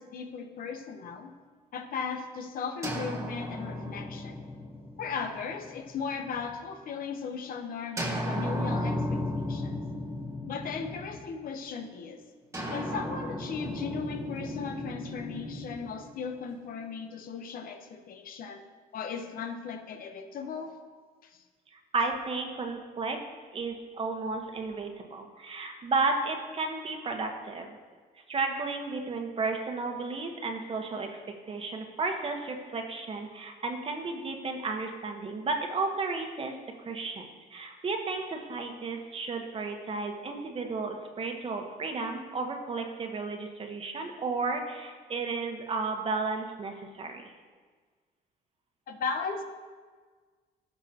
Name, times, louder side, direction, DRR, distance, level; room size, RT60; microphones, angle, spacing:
voice 1, 0.0-1.3 1.7-4.4 5.0-9.8 10.5-12.2 12.7-18.6 18.9-20.8 21.2-21.4 48.9-49.4, left 5 dB, 55° left, 6 dB, 0.9 m, -37 dB
sound 1, 2.8-6.6 8.0-11.5 12.5-16.7, left 1 dB, 15° right, 1.8 m, -35 dB
voice 2, 21.9-23.2 23.5-27.8 28.3-31.1 31.5-36.6 36.8-47.2, right 3 dB, 35° right, 3 dB, 1.2 m, -33 dB
15.5 x 6.2 x 2.9 m, 1.5 s
cardioid pair, 110°, 17 cm